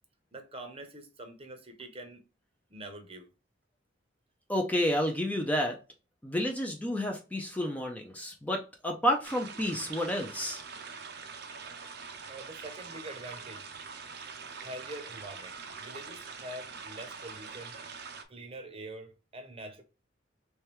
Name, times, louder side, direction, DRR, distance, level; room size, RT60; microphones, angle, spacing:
voice 1, 0.3-2.2 2.7-3.3 12.3-13.7 14.6-17.7 18.3-19.8, right 1 dB, 30° right, 0.8 m, -45 dB
voice 2, 4.5-5.8 6.2-10.6, equal, 10° left, 0.5 m, -30 dB
sound 1, 9.2-18.2, right 5 dB, 55° right, 0.6 m, -44 dB
3.4 x 3.3 x 3.0 m
head